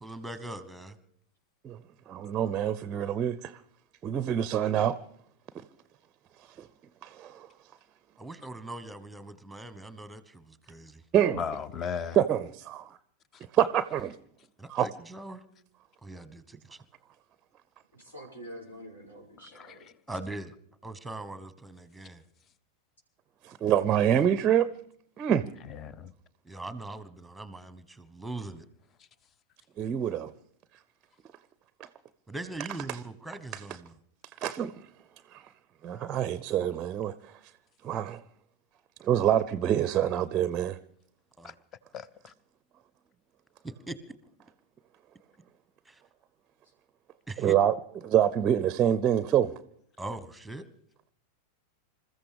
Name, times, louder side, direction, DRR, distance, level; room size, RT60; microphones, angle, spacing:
voice 1, 0.0-1.0 8.2-11.0 14.6-15.4 16.0-16.8 20.1-20.5 20.8-22.2 26.4-28.7 32.3-33.9 39.2-39.3 41.4-41.5 43.6-44.0 45.8-46.0 47.3-47.6 50.0-50.7, right 2 dB, 5° right, 1.1 m, -41 dB
voice 2, 2.1-3.6 4.0-5.0 6.6-6.7 7.0-7.5 11.1-11.4 12.1-12.9 13.5-14.1 14.7-14.9 23.4-24.7 25.2-25.5 29.8-30.3 34.4-34.8 35.3-35.4 35.8-37.1 37.8-38.2 39.0-40.8 47.4-47.7 48.0-49.5, right 10 dB, 30° right, 0.5 m, -26 dB
voice 3, 11.3-12.2 19.5-19.8 25.7-26.1 41.4-41.5 41.9-42.3, left 6 dB, 30° left, 0.8 m, -36 dB
voice 4, 17.9-19.8 46.6-46.7, equal, 75° left, 6.2 m, -46 dB
27.0 x 14.5 x 3.5 m
figure-of-eight pair, 90°, 0 cm